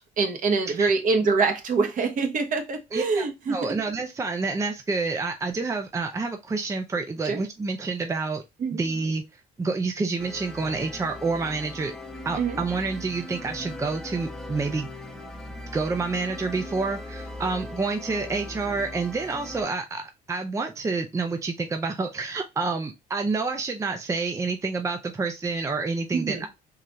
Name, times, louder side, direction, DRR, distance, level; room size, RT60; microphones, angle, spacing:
voice 1, 0.2-3.7 7.2-7.4 8.6-8.8 12.4-12.6 26.1-26.5, right 4 dB, 50° right, 1.2 m, -25 dB
voice 2, 2.9-8.4 8.7-9.2 9.6-11.9 12.2-14.9 15.7-26.5, right 4 dB, 20° right, 0.5 m, -28 dB
sound 1, 10.2-19.6, left 1 dB, ahead, 0.9 m, -39 dB
3.8 x 2.8 x 3.2 m
cardioid pair, 110°, 17 cm